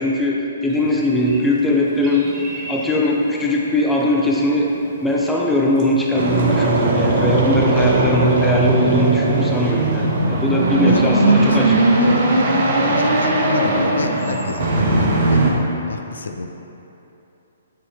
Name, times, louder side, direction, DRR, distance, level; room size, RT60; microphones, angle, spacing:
voice 1, 0.0-2.3 2.7-4.7 5.0-11.8, left 1 dB, 5° left, -3 dB, 0.7 m, -19 dB
sound 1, 0.7-15.5, right 1 dB, 25° right, 1.1 m, -39 dB
sound 2, 6.2-15.5, right 2 dB, 55° right, 0.9 m, -18 dB
voice 2, 10.8-11.7 12.0-12.2 12.9-15.4 15.9-16.5, left 4 dB, 70° left, 5 dB, 0.4 m, -27 dB
9.0 x 4.2 x 3.4 m, 2.9 s
figure-of-eight pair, 125°, 0 cm